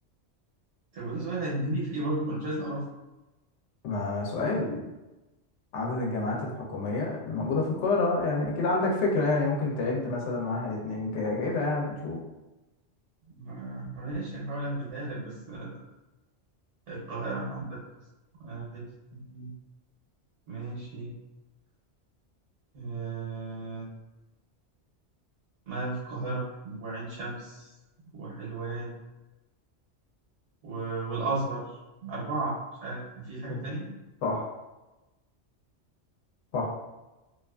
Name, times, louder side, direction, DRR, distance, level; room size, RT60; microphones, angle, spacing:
voice 1, 0.9-2.9 13.4-15.8 16.9-17.8 18.4-18.8 19.3-19.5 20.5-21.1 22.7-23.9 25.7-27.7 28.1-29.0 30.6-33.9, right 2 dB, 85° right, -5 dB, 1.1 m, -34 dB
voice 2, 3.8-4.8 5.7-12.2 33.5-33.6 34.2-34.5 36.5-36.7, left 3 dB, 85° left, -2 dB, 0.9 m, -28 dB
2.5 x 2.4 x 2.2 m, 1.1 s
omnidirectional pair, 1.2 m